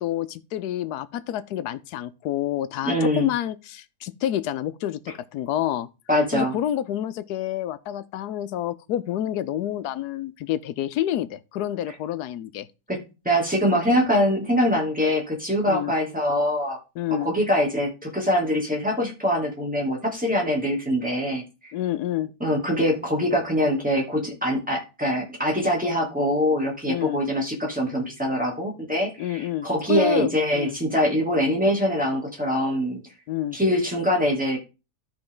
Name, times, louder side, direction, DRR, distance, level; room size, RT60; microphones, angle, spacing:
voice 1, 0.0-5.9 6.3-12.7 15.7-15.9 17.0-17.3 21.7-22.3 26.9-27.2 29.2-30.8 33.3-33.6, left 12 dB, 75° left, 1.1 m, -28 dB
voice 2, 2.8-3.3 6.1-6.6 12.9-16.8 17.1-21.7 22.4-33.0 33.5-34.6, equal, 5° right, 2.6 m, -23 dB
13.0 x 4.8 x 3.8 m
omnidirectional pair, 1.7 m